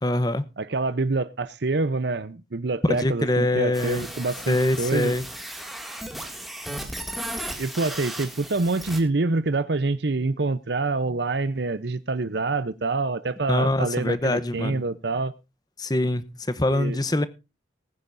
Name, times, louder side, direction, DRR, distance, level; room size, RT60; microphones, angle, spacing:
voice 1, 0.0-0.4 2.8-4.0 4.5-5.2 13.5-14.8 15.8-17.3, left 1 dB, 20° left, 0.9 m, -24 dB
voice 2, 0.6-5.1 7.6-15.3 16.7-17.0, right 3 dB, 65° right, 0.7 m, -26 dB
sound 1, 3.7-9.0, right 1 dB, ahead, 2.2 m, -36 dB
20.0 x 10.0 x 2.6 m
head